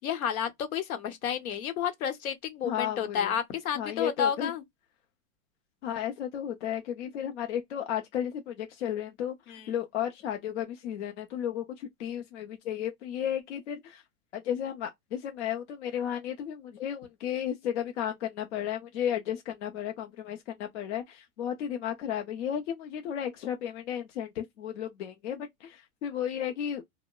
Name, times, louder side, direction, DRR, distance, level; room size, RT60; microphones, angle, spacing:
voice 1, 0.0-4.6 9.5-9.7, left 8 dB, 70° left, 0.9 m, -31 dB
voice 2, 2.6-3.4 3.8-4.5 5.8-14.0 14.3-26.8, left 9 dB, 55° left, 0.6 m, -34 dB
2.8 x 2.1 x 2.2 m
supercardioid pair, 170°, 43 cm